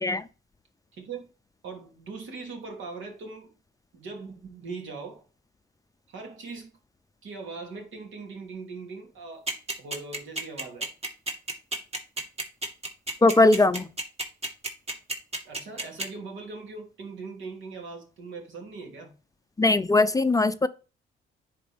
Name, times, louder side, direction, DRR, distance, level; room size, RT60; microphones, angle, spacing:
voice 1, 0.9-1.3 1.6-3.5 3.9-5.2 6.1-6.7 7.2-9.5 9.8-10.9 15.4-19.1, right 4 dB, 75° right, 2.8 m, -40 dB
sound 1, 9.5-16.0, right 2 dB, 30° right, 2.2 m, -30 dB
voice 2, 13.2-13.9 19.6-20.7, left 2 dB, 15° left, 0.5 m, -20 dB
10.0 x 4.4 x 3.5 m
cardioid pair, 90°, 20 cm